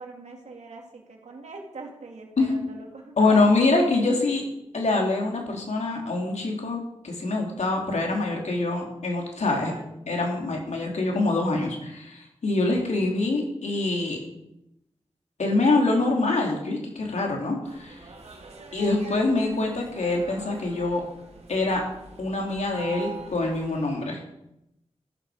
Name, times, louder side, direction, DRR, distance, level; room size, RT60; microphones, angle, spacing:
voice 1, 0.0-3.8 9.5-9.8, right 3 dB, 90° right, 1 dB, 3.1 m, -42 dB
voice 2, 3.2-4.4 4.7-9.7 10.1-14.2 15.4-18.0 18.7-21.0 21.5-21.8 22.2-24.2, left 2 dB, 85° left, 0 dB, 3.6 m, -25 dB
sound 1, 17.6-23.9, right 3 dB, 65° right, 2.6 m, -44 dB
13.5 x 12.0 x 5.3 m, 0.85 s
wide cardioid pair, 95°, 12 cm